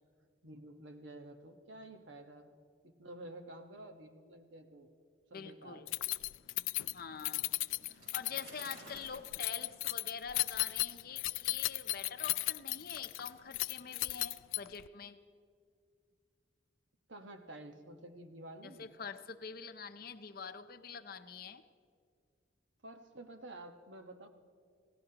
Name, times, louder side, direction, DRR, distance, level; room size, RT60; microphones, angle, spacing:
voice 1, 0.4-2.5 2.8-4.9 5.3-5.9 7.2-7.5 17.1-18.9 22.8-24.3, right 1 dB, 75° right, 5 dB, 1.2 m, -51 dB
voice 2, 5.3-5.9 6.9-7.4 7.8-15.2 18.6-21.6, left 6 dB, 50° left, 10 dB, 0.6 m, -46 dB
Keys jangling, 5.9-14.9, left 19 dB, 85° left, 0.3 m, -36 dB
Bicycle, 7.2-11.0, right 1 dB, 55° right, 3.8 m, -56 dB
28.0 x 17.0 x 2.9 m, 2.2 s
head